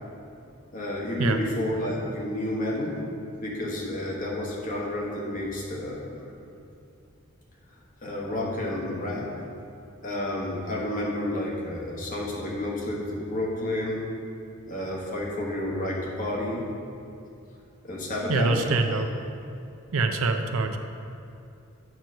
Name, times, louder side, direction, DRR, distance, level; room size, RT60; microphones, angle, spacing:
voice 1, 0.7-3.0 3.4-6.2 8.0-9.3 10.0-14.0 14.7-16.7 17.8-18.9, left 1 dB, 40° left, -3 dB, 1.2 m, -30 dB
voice 2, 18.3-19.1 19.9-20.8, right 3 dB, 80° right, 6 dB, 0.5 m, -24 dB
8.9 x 3.0 x 6.3 m, 2.7 s
head